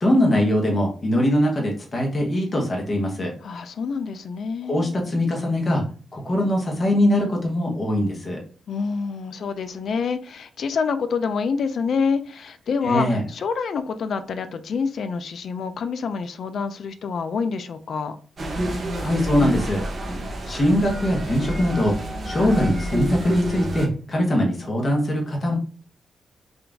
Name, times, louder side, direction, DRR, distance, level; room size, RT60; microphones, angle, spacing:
voice 1, 0.0-3.3 4.6-5.8 6.1-8.4 12.8-13.2 19.0-19.8 20.5-21.9 22.2-25.5, left 1 dB, 25° left, 0.9 m, -22 dB
voice 2, 3.4-4.9 8.7-18.2, left 5 dB, 55° left, 0.3 m, -27 dB
sound 1, 18.4-23.9, right 1 dB, 35° right, 0.8 m, -28 dB
3.7 x 2.4 x 3.4 m
wide cardioid pair, 175°, 0 cm